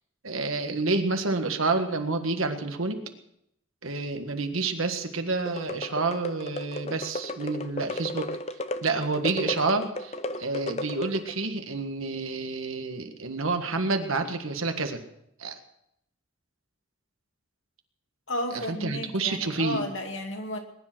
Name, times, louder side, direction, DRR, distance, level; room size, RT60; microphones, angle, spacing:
voice 1, 0.2-3.0 3.8-8.3 8.8-15.0 15.4-15.6 18.5-19.9, right 3 dB, 90° right, 6 dB, 1.7 m, -29 dB
sound 1, 5.4-11.5, left 1 dB, 30° left, 0.7 m, -35 dB
voice 2, 18.3-20.6, left 1 dB, 70° left, 3 dB, 2.4 m, -33 dB
20.5 x 10.5 x 6.1 m, 0.77 s
head